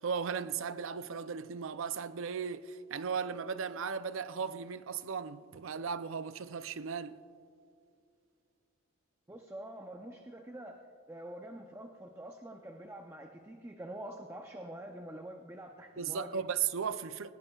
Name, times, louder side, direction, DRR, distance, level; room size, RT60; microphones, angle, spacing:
voice 1, 0.0-7.2 16.0-17.3, right 6 dB, 60° right, 0.5 m, -36 dB
voice 2, 9.3-16.5, right 1 dB, 10° right, 0.6 m, -46 dB
19.5 x 19.0 x 2.4 m
head